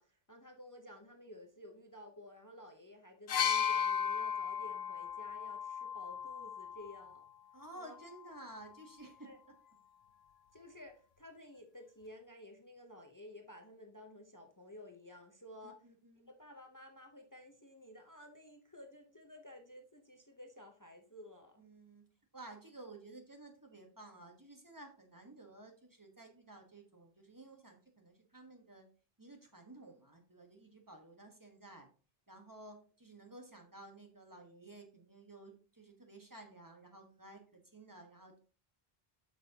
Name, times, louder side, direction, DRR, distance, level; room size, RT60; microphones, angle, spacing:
voice 1, 0.0-7.2 7.7-7.9 9.2-9.4 10.5-15.8 16.3-21.6, left 1 dB, 20° left, 5 dB, 0.8 m, -54 dB
sound 1, 3.3-7.1 8.1-8.3, left 8 dB, 80° left, 0.9 m, -35 dB
voice 2, 7.5-9.3 15.6-16.3 21.6-22.0 22.3-28.8 29.2-31.9 32.3-38.4, right 2 dB, 20° right, 3 dB, 1.3 m, -54 dB
8.4 x 6.0 x 2.8 m, 0.39 s
omnidirectional pair, 1.0 m